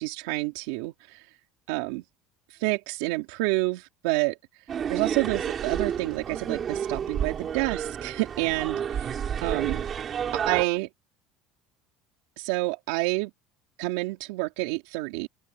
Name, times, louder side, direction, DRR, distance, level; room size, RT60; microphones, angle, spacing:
voice 1, 0.0-1.3 1.7-2.0 2.5-4.4 4.9-9.1 9.4-9.9 10.3-10.9 12.4-13.3 13.8-15.3, right 22 dB, 90° right, 3.2 m, -28 dB
sound 1, 4.7-10.6, right 8 dB, 25° right, 7.5 m, -30 dB
open air
cardioid pair, 170°, 0 cm